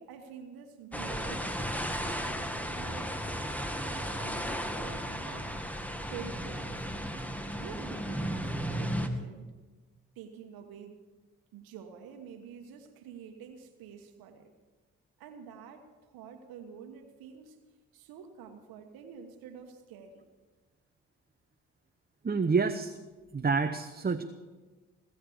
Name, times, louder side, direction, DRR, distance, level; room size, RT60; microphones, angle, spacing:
voice 1, 0.0-2.2 2.7-3.1 3.8-5.5 6.0-6.9 7.6-9.5 10.1-11.0 11.5-14.5 15.2-17.6 17.9-20.2, right 7 dB, 80° right, 6 dB, 1.2 m, -48 dB
sound 1, 0.9-9.1, equal, 5° left, 1.8 m, -35 dB
voice 2, 22.2-22.9 23.3-24.2, right 4 dB, 25° right, 8 dB, 0.9 m, -28 dB
20.5 x 7.8 x 6.9 m, 1.3 s
hypercardioid pair, 40°, 35 cm